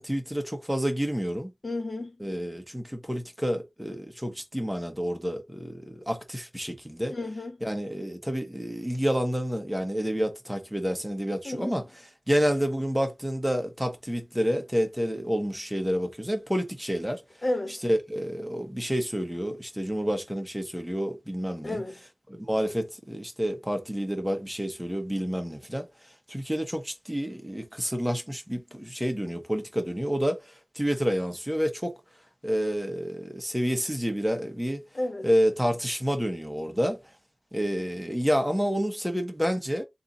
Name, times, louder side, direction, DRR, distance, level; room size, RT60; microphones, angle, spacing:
voice 1, 0.0-1.5 2.2-7.1 7.6-11.8 12.3-17.2 17.8-21.8 22.3-25.9 26.3-31.9 32.4-34.8 35.2-37.0 37.5-39.8, equal, 5° right, 1.2 m, -29 dB
voice 2, 1.6-2.2 7.1-7.6 11.4-11.8 17.4-17.8 21.6-21.9 34.9-35.3, left 1 dB, 55° left, 1.4 m, -31 dB
3.5 x 2.7 x 4.0 m
wide cardioid pair, 60°, 0 cm